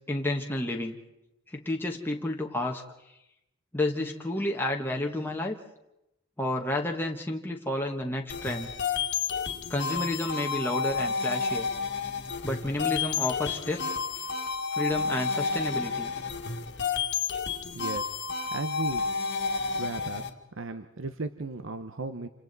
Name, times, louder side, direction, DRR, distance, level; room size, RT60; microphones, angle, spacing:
voice 1, 0.1-1.0 1.5-2.8 3.7-5.6 6.4-8.7 9.7-11.7 12.4-13.9 14.1-14.2 14.8-16.1, left 1 dB, 10° left, 1 dB, 1.3 m, -30 dB
sound 1, 8.3-20.3, left 5 dB, 55° left, 1.7 m, -31 dB
voice 2, 17.7-18.1 18.5-19.1 19.7-20.2 20.5-22.3, right 3 dB, 60° right, 9 dB, 0.9 m, -35 dB
28.5 x 26.0 x 4.1 m, 0.88 s
head